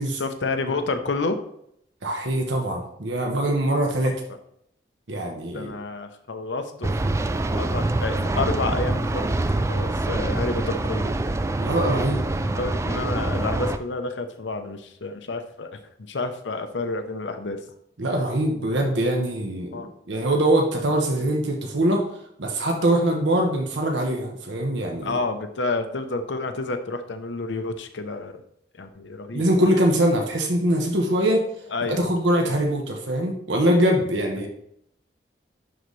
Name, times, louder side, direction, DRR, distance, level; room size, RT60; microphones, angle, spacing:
voice 1, 0.1-1.4 5.5-6.9 7.5-11.2 12.4-17.6 19.7-19.9 21.1-21.3 25.0-28.4 28.7-29.6 31.7-32.1, left 3 dB, 85° left, 8 dB, 0.8 m, -29 dB
voice 2, 2.0-4.1 5.1-5.7 11.6-12.2 18.0-22.0 22.4-25.2 29.3-31.4 31.9-34.5, right 1 dB, 85° right, 1 dB, 1.0 m, -23 dB
sound 1, 6.8-13.8, right 2 dB, 15° right, 0.3 m, -25 dB
10.5 x 4.0 x 3.2 m, 0.73 s
head